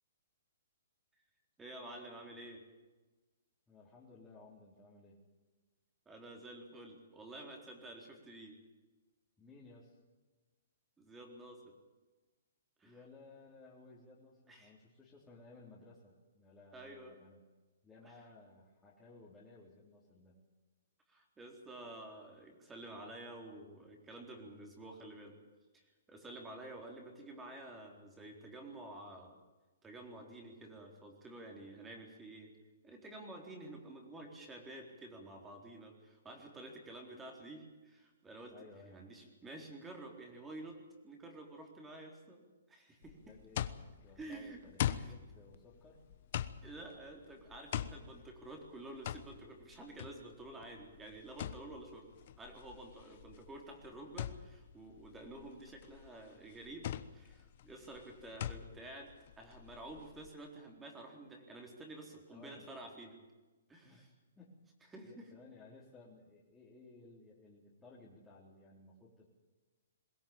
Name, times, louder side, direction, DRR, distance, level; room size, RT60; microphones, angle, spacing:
voice 1, 1.6-2.6 6.1-8.6 11.0-11.7 12.8-13.0 14.5-14.7 16.7-17.2 18.1-18.2 21.1-25.4 25.7-29.4 29.8-32.5 32.8-38.5 38.8-40.8 41.0-42.4 42.7-43.3 44.2-44.6 44.9-45.1 46.6-52.1 52.4-63.2 63.7-64.1 64.9-65.3, right 2 dB, 10° right, 2 dB, 4.0 m, -50 dB
voice 2, 3.7-5.2 9.4-10.0 12.8-17.4 17.8-20.4 38.5-39.0 43.2-43.7 44.0-46.0 62.3-62.7 63.8-64.1 64.4-64.6 65.0-69.3, left 3 dB, 10° left, -8 dB, 3.9 m, -58 dB
sound 1, 43.0-60.3, left 11 dB, 50° left, 1.1 m, -43 dB
22.0 x 17.0 x 8.9 m, 1.2 s
hypercardioid pair, 150°, 0 cm